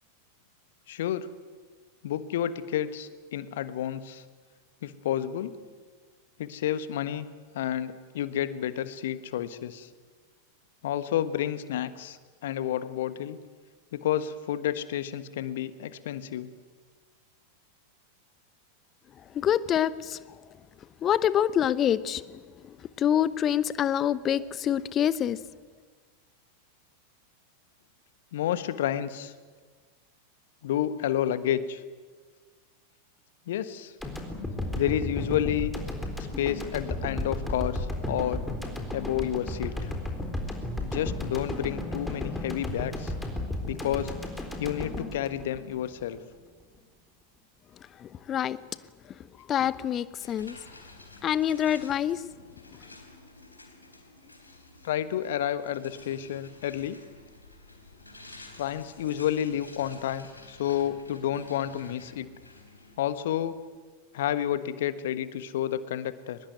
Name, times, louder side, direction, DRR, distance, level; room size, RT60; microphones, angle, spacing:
voice 1, 0.9-1.3 2.0-4.2 4.8-5.6 6.4-7.3 7.5-9.9 10.8-12.2 12.4-13.4 13.9-16.5 28.3-29.3 30.6-31.8 33.5-33.9 34.7-35.7 36.4-38.4 38.9-39.9 40.8-43.1 43.7-44.1 44.6-46.2 54.8-57.0 58.6-62.3 63.0-63.6 64.1-66.4, left 11 dB, 55° left, 1.4 m, -30 dB
voice 2, 19.3-20.2 21.0-25.4 48.0-48.6 49.5-50.6 51.2-52.2, left 10 dB, 30° left, 0.9 m, -26 dB
sound 1, 34.0-46.2, left 1 dB, 5° left, 3.9 m, -34 dB
sound 2, 50.2-63.8, left 2 dB, 80° left, 3.8 m, -51 dB
23.0 x 20.5 x 9.4 m
figure-of-eight pair, 90°, 0 cm